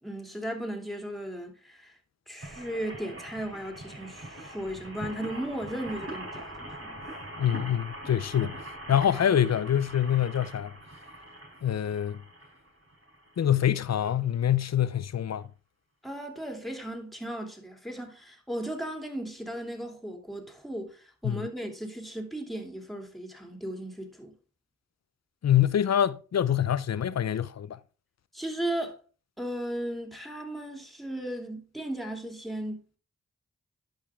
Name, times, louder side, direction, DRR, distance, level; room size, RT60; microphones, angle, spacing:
voice 1, 0.0-1.9 2.3-7.0 16.0-24.3 28.3-29.0 29.4-33.0, right 1 dB, ahead, 2.8 m, -36 dB
sound 1, 2.4-13.5 14.1-14.2 14.4-14.5, right 1 dB, 50° right, 4.2 m, -42 dB
voice 2, 7.4-8.6 8.9-10.7 11.6-12.2 13.4-15.5 21.2-21.4 25.4-27.8, left 10 dB, 60° left, 0.6 m, -25 dB
11.5 x 5.3 x 3.5 m
cardioid pair, 40°, 30 cm